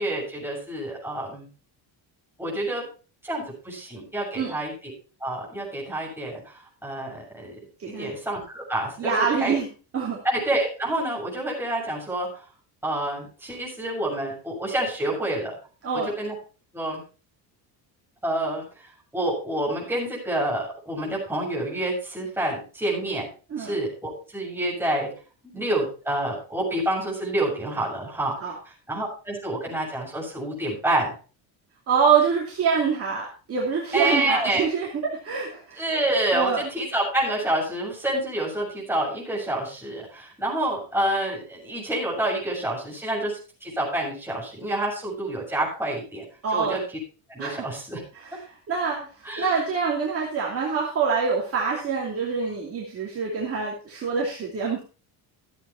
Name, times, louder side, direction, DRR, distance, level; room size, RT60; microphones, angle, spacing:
voice 1, 0.0-1.5 2.4-2.9 3.2-4.7 5.2-7.6 7.9-9.5 10.2-12.3 12.8-15.6 15.9-16.3 16.7-17.0 18.2-18.9 19.1-23.3 23.6-25.1 25.4-28.3 28.9-31.1 33.9-34.6 35.8-46.2 46.5-46.8 47.3-48.0 49.2-49.6, right 1 dB, 5° right, -5 dB, 7.2 m, -28 dB
voice 2, 7.8-8.2 9.0-9.7 9.9-10.2 15.8-16.1 23.5-23.7 28.4-28.6 31.9-35.8 36.3-36.6 46.4-46.8 47.4-47.6 48.1-48.4 48.7-54.8, right 6 dB, 30° right, -3 dB, 2.7 m, -25 dB
14.5 x 8.9 x 4.4 m, 0.35 s
cardioid pair, 180°, 44 cm